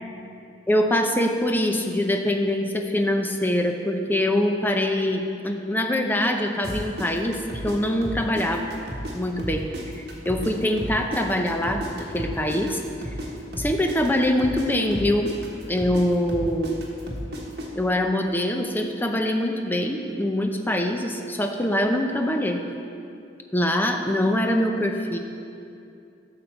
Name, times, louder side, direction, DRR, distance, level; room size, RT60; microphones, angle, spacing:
voice 1, 0.7-7.4 7.6-8.7 9.1-12.8 13.6-15.3 15.7-16.8 17.7-22.6 23.5-25.2, left 1 dB, 10° left, 4 dB, 0.7 m, -24 dB
sound 1, 6.6-9.1 9.4-13.3 13.5-17.7, equal, 65° right, 1.4 m, -33 dB
12.0 x 6.9 x 4.4 m, 2.5 s
head